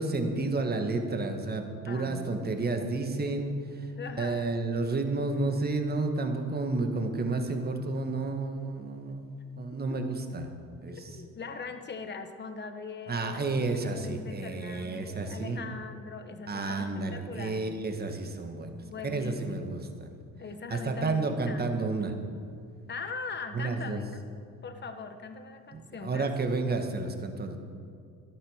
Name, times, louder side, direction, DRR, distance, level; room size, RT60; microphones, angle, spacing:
voice 1, 0.0-10.5 10.8-11.2 13.1-15.6 16.5-20.2 20.7-22.1 23.5-24.0 25.7-27.6, right 3 dB, 30° right, 5 dB, 1.6 m, -31 dB
voice 2, 1.9-2.9 4.0-4.5 10.9-18.0 18.8-19.8 20.4-21.9 22.9-24.1 24.6-26.3, left 4 dB, 30° left, 8 dB, 1.2 m, -41 dB
14.0 x 12.0 x 6.5 m, 2.3 s
cardioid pair, 130°, 33 cm